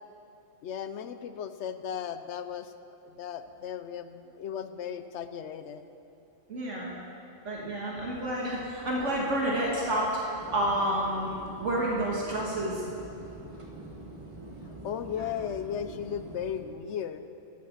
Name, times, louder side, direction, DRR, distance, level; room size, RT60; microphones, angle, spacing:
voice 1, 0.6-2.7 3.0-5.8 14.8-17.2, left 8 dB, 70° left, 10 dB, 0.8 m, -36 dB
voice 2, 6.5-6.9 7.4-10.2 10.5-11.3 11.6-12.8, right 1 dB, 65° right, -4 dB, 1.8 m, -29 dB
sound 1, 10.3-16.6, right 1 dB, 25° right, 1.3 m, -45 dB
13.0 x 7.5 x 7.2 m, 2.8 s
omnidirectional pair, 1.3 m